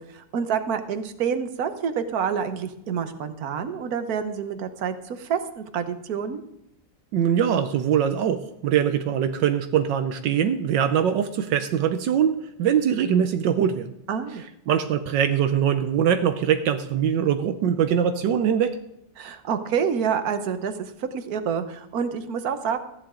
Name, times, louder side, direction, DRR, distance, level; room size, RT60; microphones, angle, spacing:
voice 1, 0.0-6.4 14.1-14.4 19.2-22.8, right 7 dB, 55° right, 9 dB, 1.4 m, -28 dB
voice 2, 7.1-13.9 14.7-18.8, right 8 dB, 75° right, 8 dB, 1.4 m, -22 dB
14.5 x 10.5 x 3.7 m, 0.84 s
omnidirectional pair, 2.0 m